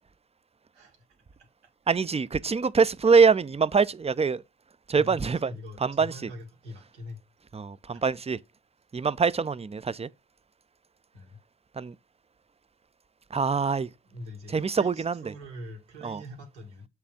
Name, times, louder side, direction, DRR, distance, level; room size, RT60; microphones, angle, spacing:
voice 1, 1.9-4.4 4.9-5.5 5.8-6.1 7.5-8.4 8.9-10.1 11.8-11.9 13.3-13.9 14.5-15.1 16.0-16.2, right 5 dB, 20° right, 0.6 m, -24 dB
voice 2, 4.9-7.2 7.9-8.0 11.1-11.4 14.0-16.9, left 1 dB, 85° right, 2.0 m, -43 dB
7.7 x 3.4 x 5.8 m
hypercardioid pair, 40°, 34 cm